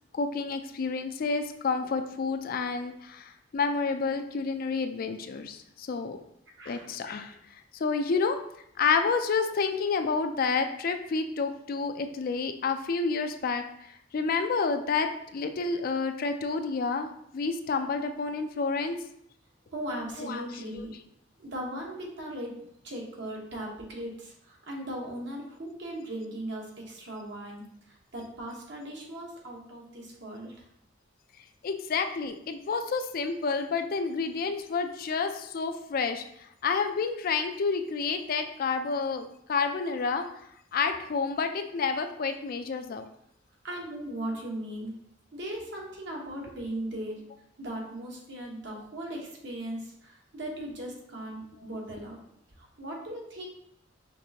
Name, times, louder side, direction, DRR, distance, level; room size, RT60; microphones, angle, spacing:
voice 1, 0.1-6.2 6.7-7.3 7.7-8.4 8.8-13.6 14.1-19.0 20.2-20.4 20.7-20.8 31.6-36.2 36.6-40.3 40.7-43.1, left 4 dB, 50° left, 7 dB, 0.4 m, -29 dB
voice 2, 6.6-7.0 19.7-20.9 21.4-22.5 22.8-30.5 43.6-44.9 45.3-47.2 47.6-52.2 52.6-53.5, right 1 dB, 65° right, -1 dB, 1.1 m, -38 dB
5.2 x 3.2 x 2.8 m, 0.71 s
head